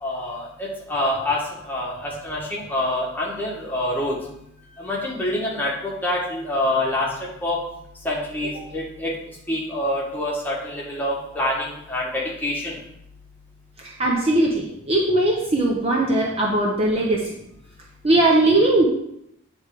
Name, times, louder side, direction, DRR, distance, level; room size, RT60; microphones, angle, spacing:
voice 1, 0.0-0.4 0.9-1.4 1.7-4.1 4.8-7.1 7.4-7.6 8.0-9.1 9.5-12.1 12.4-12.7, left 1 dB, 10° left, -5 dB, 1.6 m, -26 dB
voice 2, 13.8-17.2 18.0-18.9, right 2 dB, 30° right, -2 dB, 0.9 m, -19 dB
8.7 x 3.4 x 4.9 m, 0.76 s
head